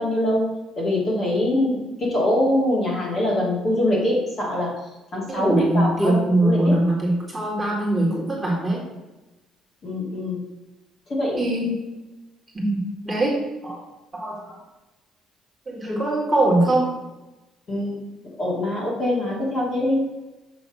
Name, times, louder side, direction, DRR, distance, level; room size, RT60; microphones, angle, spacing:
voice 1, 0.0-4.8 5.1-6.8 9.8-10.4 11.1-11.4 17.7-20.1, left 1 dB, 30° left, -4 dB, 2.2 m, -23 dB
voice 2, 5.3-8.8 11.4-11.8 12.5-12.8 13.0-13.3 13.6-13.8 14.1-14.6 15.7-16.9, right 1 dB, 20° right, -3 dB, 2.0 m, -22 dB
6.9 x 3.4 x 6.2 m, 1.1 s
cardioid pair, 140°, 0 cm